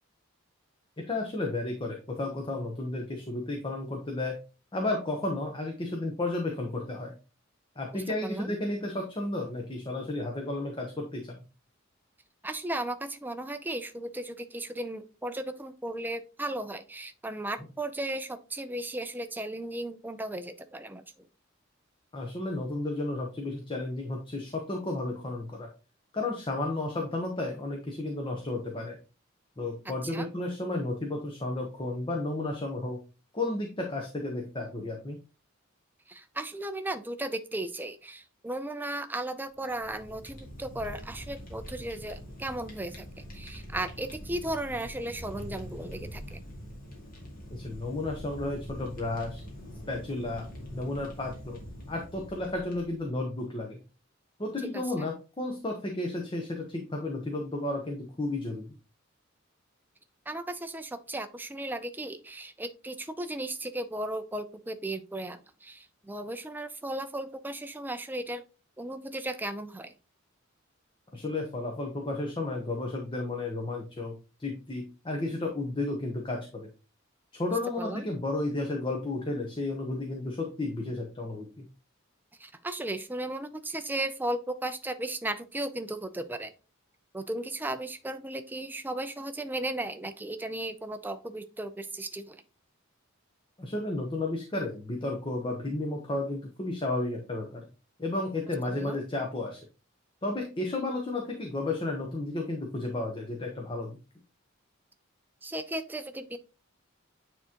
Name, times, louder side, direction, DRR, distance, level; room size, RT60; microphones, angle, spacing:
voice 1, 1.1-4.4 4.7-7.1 7.8-11.4 22.1-25.7 26.1-29.0 29.6-33.0 33.3-35.2 47.5-49.4 49.9-50.5 50.7-51.6 51.9-53.8 54.4-58.8 71.1-76.7 77.3-81.7 93.6-97.7 98.0-99.6 100.2-104.0, left 2 dB, 25° left, 1 dB, 0.9 m, -33 dB
voice 2, 7.9-8.5 12.4-21.0 29.9-30.3 36.1-46.4 54.7-55.1 60.3-68.4 68.8-69.9 77.5-78.0 82.4-86.5 87.1-92.4 98.7-99.0 105.4-106.4, right 1 dB, 10° right, 9 dB, 0.4 m, -36 dB
Fire, 39.6-53.1, equal, 45° left, 1.9 m, -44 dB
8.9 x 3.6 x 2.9 m, 0.32 s
head